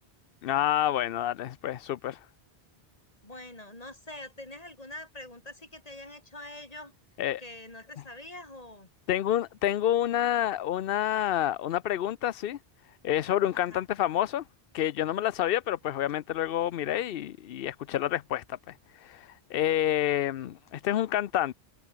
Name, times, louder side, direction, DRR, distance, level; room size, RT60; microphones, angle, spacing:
voice 1, 0.4-2.2 7.2-7.4 9.1-12.6 13.0-14.4 14.7-21.5, left 12 dB, 65° left, 0.8 m, -28 dB
voice 2, 3.2-6.9 7.4-8.9 13.5-13.8, left 1 dB, 35° left, 4.1 m, -45 dB
omnidirectional pair, 1.0 m